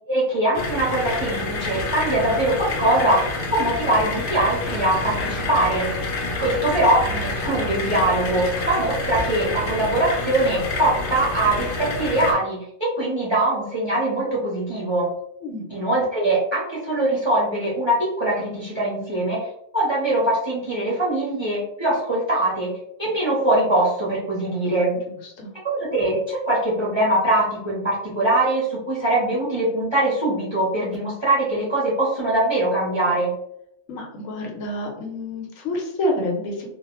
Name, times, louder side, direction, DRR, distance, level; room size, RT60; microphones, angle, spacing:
voice 1, 0.1-5.9 6.4-15.1 15.7-19.5 19.7-22.7 23.0-25.0 25.6-33.3, right 1 dB, 30° right, -6 dB, 0.6 m, -22 dB
sound 1, 0.5-12.3, left 2 dB, 60° left, 0.6 m, -28 dB
voice 2, 25.1-25.5 33.9-36.7, left 1 dB, 90° left, 1 dB, 1.1 m, -28 dB
2.3 x 2.1 x 2.9 m, 0.77 s
omnidirectional pair, 1.3 m